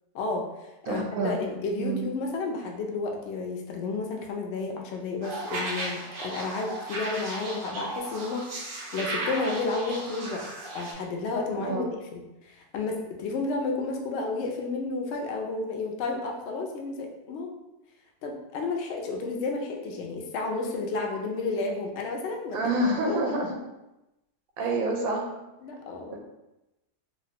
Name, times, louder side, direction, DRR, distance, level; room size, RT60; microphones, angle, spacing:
voice 1, 0.1-0.5 0.8-10.5 10.7-17.5 18.2-23.4 25.6-26.2, left 3 dB, 70° left, 2 dB, 0.7 m, -32 dB
voice 2, 0.9-1.4 1.8-2.1 11.5-11.9 22.5-23.6 24.6-25.3, right 2 dB, 70° right, 1 dB, 1.0 m, -28 dB
sound 1, 5.2-10.9, right 2 dB, 55° right, 0.6 m, -35 dB
3.1 x 2.5 x 2.7 m, 0.97 s
omnidirectional pair, 1.6 m